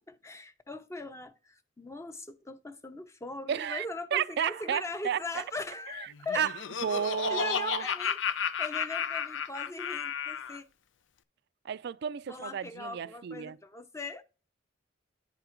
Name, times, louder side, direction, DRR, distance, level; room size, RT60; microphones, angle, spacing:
voice 1, 0.0-6.5 7.3-10.6 12.3-14.2, left 2 dB, 15° left, 0.7 m, -40 dB
voice 2, 3.5-5.4 6.3-6.5 6.8-7.8 11.6-13.6, right 8 dB, 60° right, 0.4 m, -32 dB
Laughter, 6.1-10.6, left 8 dB, 85° left, 0.5 m, -33 dB
9.7 x 3.7 x 4.4 m
head